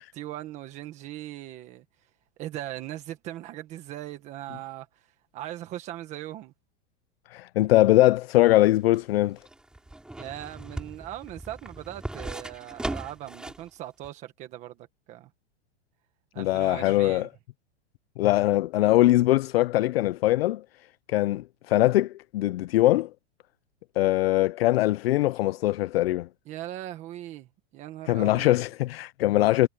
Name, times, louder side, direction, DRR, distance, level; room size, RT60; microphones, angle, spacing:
voice 1, 0.0-1.8 2.4-4.9 5.3-6.5 10.2-14.8 15.1-15.3 16.3-17.3 26.5-28.6, right 14 dB, 20° right, 1.4 m, -39 dB
voice 2, 7.3-9.4 16.4-17.3 18.2-20.6 21.1-23.1 24.0-26.3 28.1-29.7, left 16 dB, 60° left, 0.4 m, -22 dB
sound 1, 8.6-13.7 14.0-14.1, right 1 dB, ahead, 3.5 m, -38 dB
supercardioid pair, 180°, 34 cm